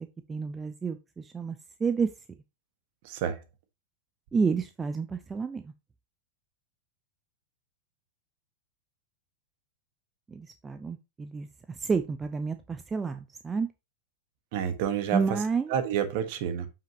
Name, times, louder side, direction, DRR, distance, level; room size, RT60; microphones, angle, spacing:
voice 1, 0.3-2.1 4.3-5.7 10.3-13.7 15.1-15.7, right 5 dB, 15° right, 0.6 m, -30 dB
voice 2, 3.0-3.4 14.5-15.2 15.7-16.7, right 9 dB, 50° right, 1.4 m, -29 dB
7.4 x 5.8 x 2.9 m
figure-of-eight pair, 90°, 0 cm